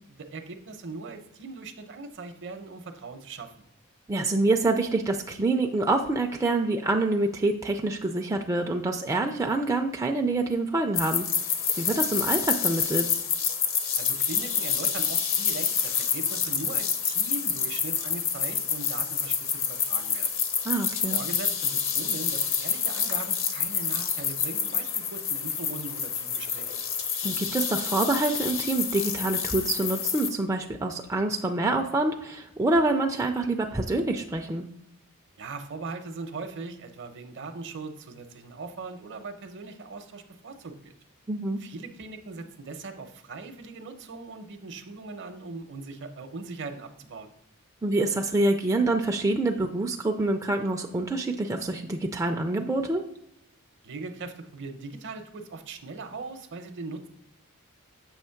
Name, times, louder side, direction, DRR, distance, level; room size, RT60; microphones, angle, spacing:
voice 1, 0.0-3.7 14.0-20.3 21.1-26.8 35.4-40.9 41.6-47.3 53.8-57.1, right 3 dB, 55° right, 7 dB, 0.7 m, -40 dB
voice 2, 4.1-11.2 11.7-13.1 20.6-21.2 27.2-34.7 41.3-41.6 47.8-53.0, right 2 dB, 15° right, 2 dB, 0.4 m, -26 dB
sound 1, 10.9-30.3, left 7 dB, 60° left, 0.8 m, -28 dB
7.2 x 3.0 x 5.7 m, 0.78 s
head